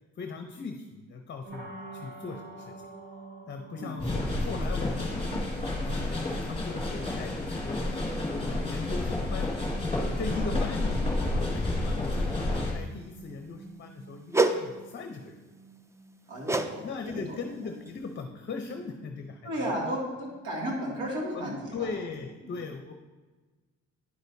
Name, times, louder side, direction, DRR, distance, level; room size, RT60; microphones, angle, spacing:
voice 1, 0.2-2.9 3.5-5.1 5.8-8.1 8.4-9.5 10.2-15.4 16.6-19.7 21.3-22.9, left 4 dB, 40° left, 5 dB, 0.7 m, -39 dB
sound 1, 1.4-21.3, right 4 dB, 35° right, 1.7 m, -49 dB
sound 2, 4.0-12.7, left 2 dB, 15° left, 1.8 m, -30 dB
sound 3, 14.3-14.6 16.5-16.7 17.0-17.3 17.9-18.0, right 3 dB, 10° right, 0.4 m, -25 dB
voice 2, 16.3-17.4 19.4-21.9 22.4-22.6, equal, 85° right, -3 dB, 2.4 m, -34 dB
9.8 x 6.3 x 2.7 m, 1.3 s
cardioid pair, 90°, 30 cm